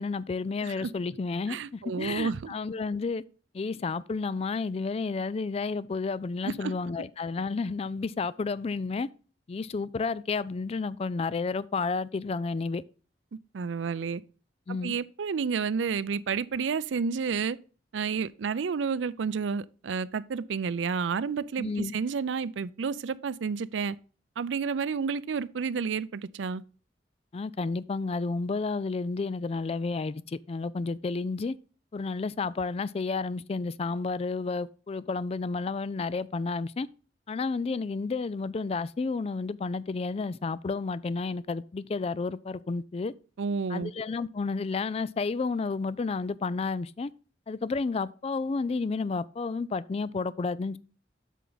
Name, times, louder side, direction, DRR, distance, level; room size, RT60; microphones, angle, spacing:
voice 1, 0.0-3.2 3.5-9.1 9.5-12.8 14.7-14.9 21.6-21.9 27.3-31.6 31.9-36.9 37.3-43.1 43.7-47.1 47.5-50.8, left 4 dB, 35° left, 0.3 m, -31 dB
voice 2, 1.5-2.5 6.4-6.7 13.5-14.2 14.7-17.6 17.9-24.0 24.4-26.6 43.4-43.9, right 5 dB, 90° right, 0.4 m, -30 dB
8.2 x 5.9 x 3.9 m
head